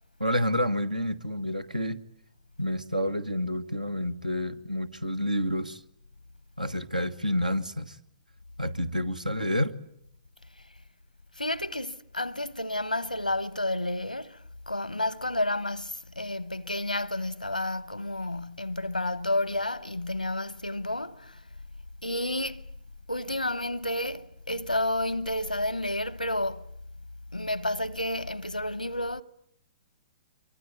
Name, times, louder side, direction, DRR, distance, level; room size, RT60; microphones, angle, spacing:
voice 1, 0.2-2.0 2.6-5.8 6.6-8.0 8.6-9.8, equal, 85° right, 1.5 m, -29 dB
voice 2, 11.4-14.4 14.7-21.4 22.0-22.6 23.1-26.6 27.3-29.2, left 1 dB, 85° left, 1.0 m, -30 dB
24.5 x 23.5 x 9.3 m
figure-of-eight pair, 115°, 4 cm